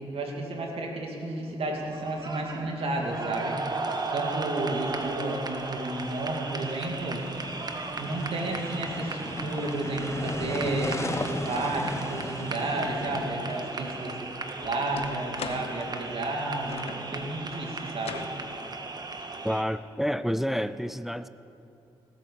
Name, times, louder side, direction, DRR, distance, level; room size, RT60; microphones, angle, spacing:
voice 1, 0.1-3.6 4.1-7.2 8.0-14.2 14.6-18.2, right 2 dB, 70° right, 0 dB, 2.6 m, -32 dB
sound 1, 1.7-19.6, right 3 dB, 40° right, 1.6 m, -36 dB
sound 2, 7.1-14.1, left 2 dB, 25° left, 1.3 m, -37 dB
sound 3, 13.5-13.6 14.1-17.1 18.0-18.4, left 6 dB, 75° left, 0.9 m, -41 dB
voice 2, 19.4-21.3, equal, 5° right, 14 dB, 0.5 m, -29 dB
17.5 x 9.1 x 7.2 m, 2.6 s
supercardioid pair, 45°, 10 cm